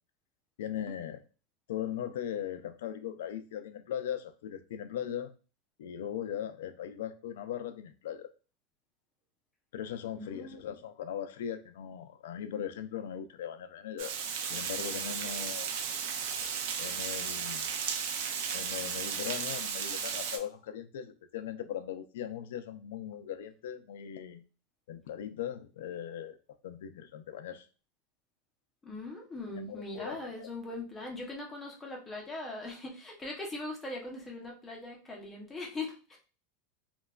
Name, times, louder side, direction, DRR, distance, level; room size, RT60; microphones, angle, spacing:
voice 1, 0.6-1.2 1.7-5.3 5.8-8.3 9.7-14.1 14.5-15.7 16.8-17.7 18.5-24.4 24.9-26.4 26.6-27.7 29.5-30.5, left 9 dB, 85° left, 0.3 m, -39 dB
voice 2, 10.2-10.6 28.8-36.2, left 2 dB, 10° left, 0.7 m, -40 dB
Water, 14.0-20.4, right 7 dB, 60° right, 0.4 m, -35 dB
3.0 x 2.2 x 2.3 m
supercardioid pair, 160°, 0 cm